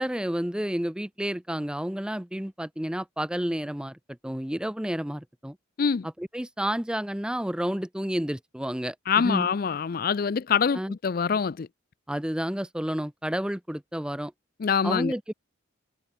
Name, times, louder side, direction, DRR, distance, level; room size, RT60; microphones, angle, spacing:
voice 1, 0.0-5.6 6.2-9.5 10.7-10.9 12.1-14.3 14.8-15.3, equal, 5° right, 0.5 m, -30 dB
voice 2, 9.1-11.7 14.6-15.1, left 6 dB, 45° left, 0.4 m, -25 dB
head